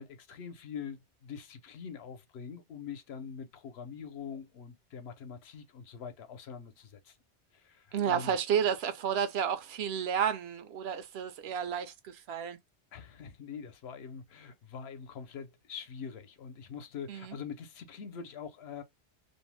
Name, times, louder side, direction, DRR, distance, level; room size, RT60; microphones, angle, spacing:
voice 1, 0.0-7.2 7.5-8.3 12.9-18.8, left 6 dB, 75° left, 0.8 m, -44 dB
voice 2, 7.9-12.6 17.1-17.3, right 8 dB, 75° right, 0.8 m, -31 dB
2.6 x 2.0 x 3.0 m
omnidirectional pair, 1.1 m